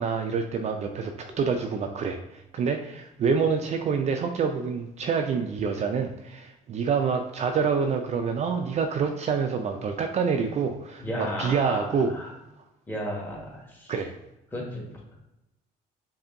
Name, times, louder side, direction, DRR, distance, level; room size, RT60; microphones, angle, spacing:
voice 1, 0.0-12.1 13.9-14.1, right 5 dB, 40° right, 5 dB, 0.4 m, -27 dB
voice 2, 11.0-12.3 12.9-13.9 14.5-14.9, equal, 10° left, -2 dB, 1.3 m, -34 dB
5.0 x 2.6 x 2.6 m, 0.91 s
cardioid pair, 110°, 17 cm